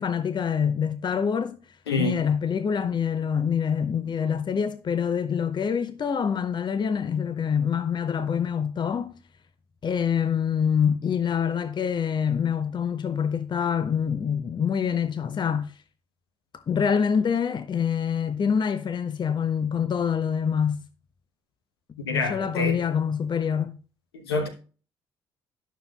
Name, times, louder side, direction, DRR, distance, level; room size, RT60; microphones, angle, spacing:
voice 1, 0.0-1.6 2.0-9.1 9.8-15.7 16.5-20.8 22.1-23.8, left 7 dB, 35° left, 0.7 m, -25 dB
voice 2, 1.9-2.2 22.1-22.8 24.2-24.5, left 3 dB, 75° left, 1.1 m, -26 dB
11.5 x 6.5 x 2.3 m
figure-of-eight pair, 45°, 13 cm